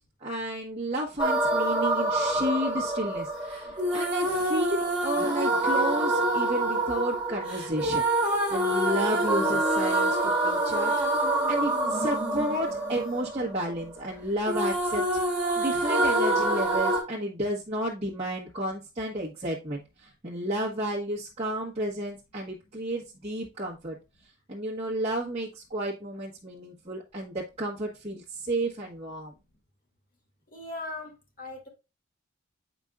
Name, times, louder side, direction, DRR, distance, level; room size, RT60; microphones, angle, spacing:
voice 1, 0.2-8.0 8.5-10.9 11.2-15.0 15.6-24.0 24.5-29.3, right 1 dB, 30° right, 1.2 m, -32 dB
sound 1, 1.2-14.1 14.4-17.0, right 1 dB, 5° right, 2.7 m, -26 dB
voice 2, 30.5-31.1 31.4-31.7, left 2 dB, 45° left, 2.1 m, -38 dB
8.9 x 5.2 x 2.4 m
head